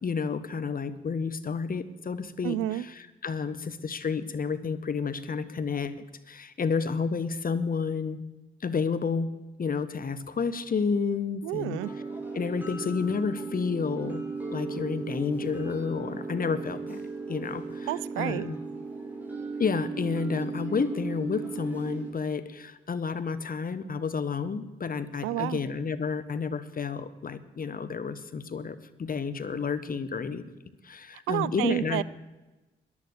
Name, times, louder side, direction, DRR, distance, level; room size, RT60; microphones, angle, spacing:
voice 1, 0.0-8.2 8.6-9.3 9.6-11.8 12.3-14.2 14.5-17.0 17.3-17.9 18.2-18.6 19.6-30.4 30.8-32.0, left 5 dB, 45° left, 13 dB, 1.1 m, -30 dB
voice 2, 2.4-2.9 11.4-11.9 17.9-18.5 25.2-25.6 31.3-32.0, right 15 dB, 85° right, 21 dB, 0.4 m, -30 dB
sound 1, 11.8-22.1, right 4 dB, 10° right, 6.0 m, -36 dB
14.5 x 10.5 x 6.5 m, 1.1 s
supercardioid pair, 45°, 20 cm